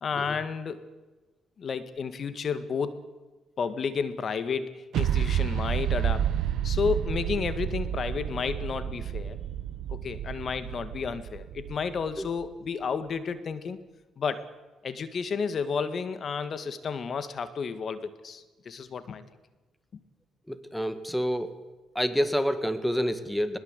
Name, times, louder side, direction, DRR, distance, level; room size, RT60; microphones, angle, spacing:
voice 1, 0.0-0.8 1.6-3.0 3.6-6.3 6.6-9.4 9.9-13.8 14.2-14.5 14.8-19.2, left 6 dB, 50° left, 12 dB, 1.9 m, -31 dB
sound 1, 4.9-12.5, right 10 dB, 75° right, 1.3 m, -30 dB
voice 2, 20.5-21.5 22.0-23.6, equal, 5° left, 11 dB, 1.9 m, -28 dB
21.0 x 21.0 x 8.2 m, 1.2 s
cardioid pair, 90°, 0 cm